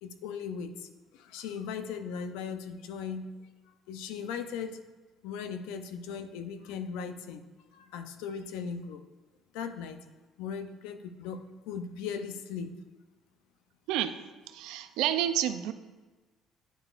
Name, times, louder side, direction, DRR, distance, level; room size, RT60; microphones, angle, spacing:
voice 1, 0.0-3.3 3.9-4.8 5.2-9.0 9.5-10.0 10.4-12.8, left 6 dB, 90° left, 8 dB, 0.5 m, -38 dB
voice 2, 14.5-15.7, right 11 dB, 80° right, 10 dB, 0.4 m, -29 dB
10.0 x 4.8 x 2.5 m, 1.3 s
supercardioid pair, 90°, 0 cm